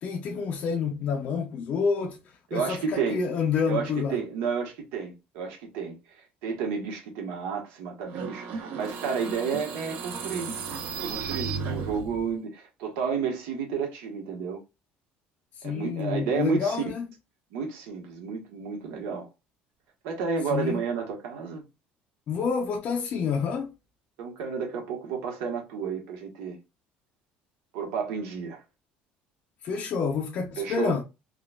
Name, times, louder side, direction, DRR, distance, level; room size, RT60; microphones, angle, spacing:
voice 1, 0.0-2.2 2.5-4.2 15.6-17.1 20.5-20.8 22.3-23.7 29.6-31.0, left 6 dB, 40° left, 0.4 m, -28 dB
voice 2, 2.5-3.2 3.7-6.0 6.4-10.5 11.0-14.6 15.6-16.8 17.5-19.3 20.0-21.6 24.2-26.6 27.7-28.6 30.6-31.0, right 6 dB, 90° right, 1.1 m, -31 dB
sound 1, 8.1-12.3, right 5 dB, 60° right, 0.7 m, -34 dB
3.7 x 2.3 x 2.2 m
cardioid pair, 170°, 4 cm